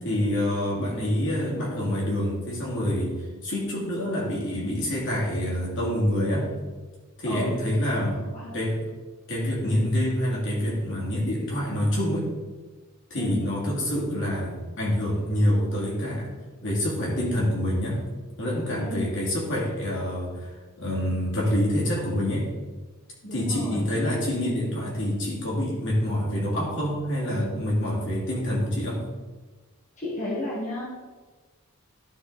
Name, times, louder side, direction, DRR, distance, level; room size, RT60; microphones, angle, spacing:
voice 1, 0.0-6.5 7.2-8.2 8.5-8.8 9.3-12.3 13.1-16.3 16.6-18.0 18.4-22.5 23.3-29.0, equal, 55° left, -4 dB, 2.8 m, -26 dB
voice 2, 8.1-8.5 13.2-13.4 18.8-19.0 23.2-23.9 30.0-30.8, left 1 dB, 35° left, -6 dB, 1.4 m, -33 dB
12.0 x 4.4 x 4.2 m, 1.3 s
head